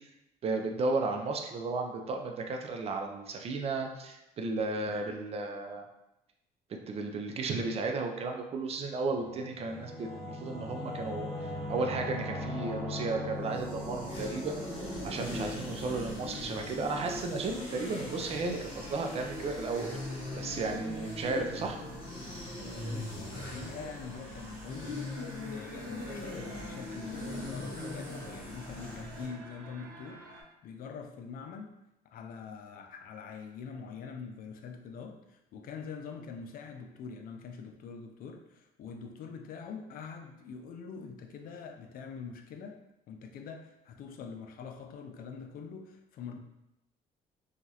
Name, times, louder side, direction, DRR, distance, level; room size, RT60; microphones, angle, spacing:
voice 1, 0.4-5.9 6.7-11.3 11.7-14.6 15.0-19.9 20.3-21.8, right 3 dB, 35° right, 4 dB, 0.4 m, -34 dB
Singing / Musical instrument, 9.0-18.2, left 1 dB, 5° right, 0.7 m, -41 dB
sound 1, 11.5-30.4, right 2 dB, 70° right, 0.9 m, -53 dB
sound 2, 13.3-29.3, left 2 dB, 30° left, 1.1 m, -40 dB
voice 2, 22.6-30.2 30.6-31.7 32.0-42.8 43.1-46.4, left 5 dB, 60° left, 5 dB, 0.4 m, -44 dB
2.9 x 2.4 x 2.7 m, 0.88 s
cardioid pair, 110°, 17 cm